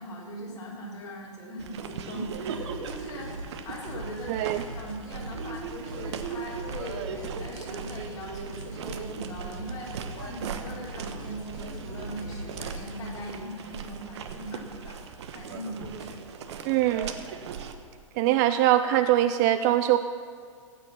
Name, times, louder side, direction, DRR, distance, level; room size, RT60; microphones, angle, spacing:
voice 1, 0.0-15.0 15.3-16.2, equal, 20° left, -5 dB, 4.0 m, -40 dB
sound 1, 1.6-17.7, right 6 dB, 55° right, 1.1 m, -39 dB
sound 2, 2.5-13.2, right 1 dB, 80° right, 2.2 m, -42 dB
voice 2, 4.3-4.6 16.6-17.1 18.2-20.0, right 13 dB, 30° right, 10 dB, 0.4 m, -22 dB
16.5 x 9.1 x 5.8 m, 2.2 s
figure-of-eight pair, 110°, 17 cm